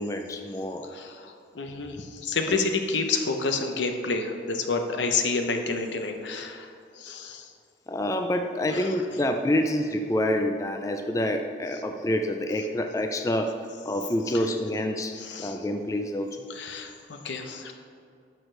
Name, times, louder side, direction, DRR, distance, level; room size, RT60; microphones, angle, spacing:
voice 1, 0.0-0.8 2.5-2.6 7.9-13.5 13.9-15.1 15.4-16.4, left 1 dB, 15° left, 5 dB, 0.3 m, -27 dB
voice 2, 0.9-6.7 7.0-7.5 8.7-8.9 15.1-15.6 16.5-17.7, left 4 dB, 75° left, 4 dB, 0.8 m, -29 dB
11.0 x 6.4 x 3.3 m, 2.3 s
head